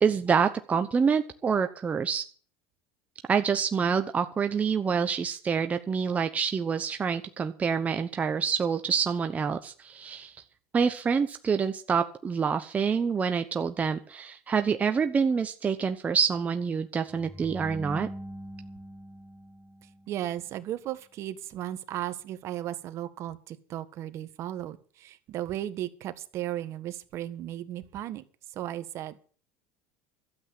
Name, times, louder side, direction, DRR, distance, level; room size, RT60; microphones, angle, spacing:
voice 1, 0.0-2.2 3.3-10.4 10.7-18.1, right 6 dB, 25° right, 7 dB, 0.9 m, -27 dB
sound 1, 17.1-20.3, equal, 5° right, 3.3 m, -42 dB
voice 2, 19.8-28.2 28.5-29.3, right 12 dB, 50° right, 11 dB, 1.5 m, -35 dB
12.5 x 8.1 x 8.7 m, 0.42 s
supercardioid pair, 105°, 6 cm